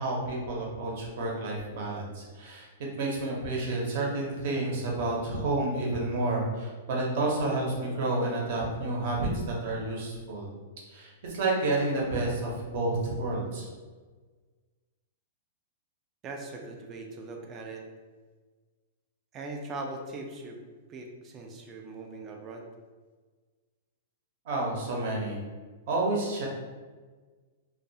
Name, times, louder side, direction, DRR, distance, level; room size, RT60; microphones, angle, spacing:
voice 1, 0.0-2.7 3.0-10.5 10.9-13.7 24.5-25.4 25.9-26.5, right 2 dB, 55° right, -2 dB, 0.7 m, -30 dB
voice 2, 16.2-17.8 19.3-20.6 20.9-22.7, right 2 dB, 25° right, 2 dB, 0.4 m, -40 dB
2.3 x 2.3 x 2.6 m, 1.4 s
hypercardioid pair, 150°, 0 cm